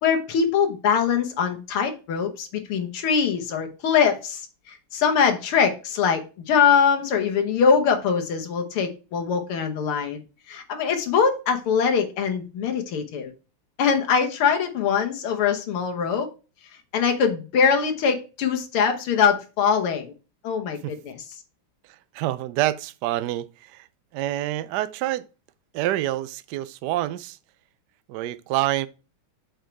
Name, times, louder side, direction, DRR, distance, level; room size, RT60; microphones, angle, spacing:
voice 1, 0.0-10.2 10.5-13.3 13.8-16.3 16.9-20.1 20.4-21.2, left 6 dB, 80° left, 2.1 m, -22 dB
voice 2, 22.1-23.9 24.1-25.2 25.7-27.4 28.1-28.9, right 14 dB, 80° right, 0.9 m, -27 dB
7.4 x 4.7 x 4.5 m
omnidirectional pair, 2.4 m